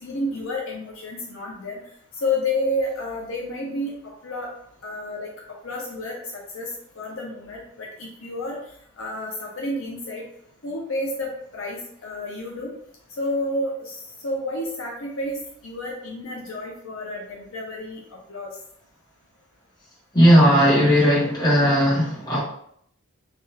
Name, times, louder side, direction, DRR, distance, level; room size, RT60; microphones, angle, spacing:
voice 1, 0.0-1.8 2.1-3.9 4.2-4.5 4.8-6.7 7.0-8.6 9.0-10.2 10.6-12.7 13.2-18.5, left 1 dB, 65° left, -2 dB, 0.6 m, -30 dB
voice 2, 20.1-22.4, equal, 20° left, -6 dB, 1.0 m, -16 dB
2.9 x 2.3 x 3.1 m, 0.67 s
head